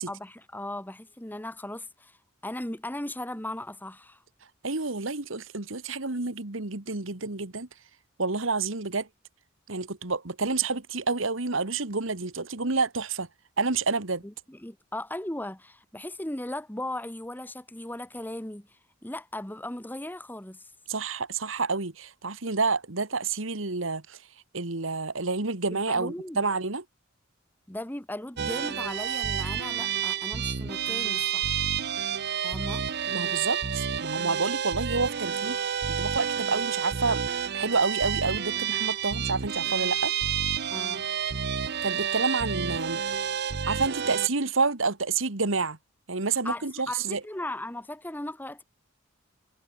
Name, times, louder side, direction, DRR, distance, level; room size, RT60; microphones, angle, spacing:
voice 1, 0.1-2.2 2.4-4.2 14.2-20.7 25.7-26.4 27.7-31.7 32.4-32.9 40.7-41.0 46.4-48.6, left 1 dB, 10° left, 1.3 m, -37 dB
voice 2, 4.6-7.7 8.2-9.1 9.7-13.3 13.6-14.2 20.9-24.2 24.5-26.8 33.1-37.2 37.5-40.1 41.8-43.0 43.7-45.8 46.1-47.2, right 4 dB, 70° right, 1.9 m, -29 dB
sound 1, 28.4-44.3, right 8 dB, 55° right, 0.7 m, -29 dB
head